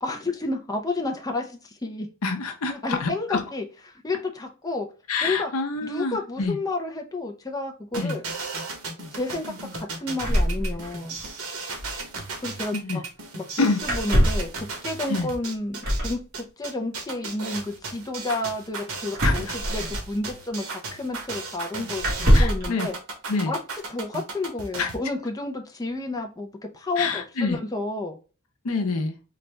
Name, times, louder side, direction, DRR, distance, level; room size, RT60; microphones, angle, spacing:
voice 1, 0.0-2.1 2.7-3.6 4.0-4.9 5.2-5.5 5.8-8.2 9.1-11.2 12.2-13.0 13.4-22.9 23.5-23.6 23.9-28.2, left 2 dB, 15° left, 0.5 m, -31 dB
voice 2, 2.2-3.4 5.1-6.6 8.0-8.2 9.0-9.1 12.7-13.0 13.6-13.8 15.1-15.3 19.2-19.5 22.3-22.9 23.3-23.5 24.8-24.9 27.0-27.6 28.6-29.1, left 3 dB, 75° left, 0.7 m, -27 dB
sound 1, 7.9-25.0, right 4 dB, 75° right, 1.1 m, -35 dB
sound 2, 10.2-11.3 11.5-11.6 11.8-12.0 13.8-14.5 15.8-16.2 19.1-20.3 21.2-21.3 22.0-22.7, equal, 45° right, 1.5 m, -22 dB
4.0 x 2.4 x 3.2 m
head